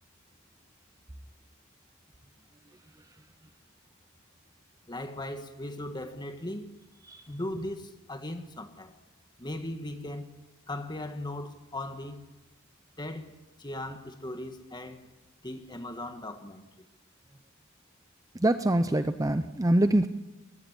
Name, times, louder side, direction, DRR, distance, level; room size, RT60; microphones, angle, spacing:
voice 1, 4.9-6.7 7.3-9.0 9.4-10.3 10.7-12.3 13.0-13.3 13.6-15.1 15.4-16.6, left 1 dB, 20° left, 1.7 m, -38 dB
voice 2, 18.3-20.1, right 1 dB, 15° right, 0.6 m, -24 dB
19.5 x 15.5 x 9.8 m
head